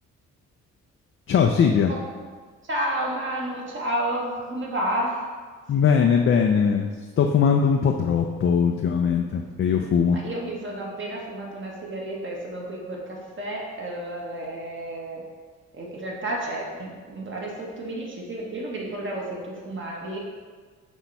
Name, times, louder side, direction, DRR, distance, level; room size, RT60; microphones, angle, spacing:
voice 1, 1.3-1.9 5.7-6.9 7.2-10.2, left 6 dB, 45° left, 2 dB, 0.5 m, -20 dB
voice 2, 2.6-5.3 9.4-9.5 10.1-15.2 15.7-20.2, right 1 dB, 40° right, -2 dB, 1.5 m, -31 dB
6.2 x 3.0 x 5.4 m, 1.5 s
cardioid pair, 90°, 30 cm